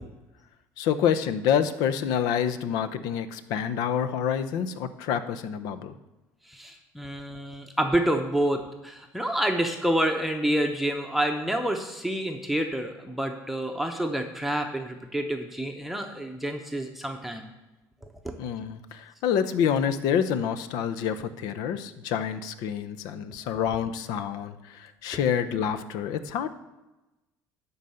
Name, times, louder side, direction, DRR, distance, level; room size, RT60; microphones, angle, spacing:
voice 1, 0.8-5.9 18.4-26.5, left 8 dB, 80° left, 12 dB, 0.7 m, -27 dB
voice 2, 6.5-17.5, right 1 dB, ahead, 3 dB, 0.8 m, -28 dB
11.0 x 4.0 x 7.8 m, 1.0 s
cardioid pair, 110°, 7 cm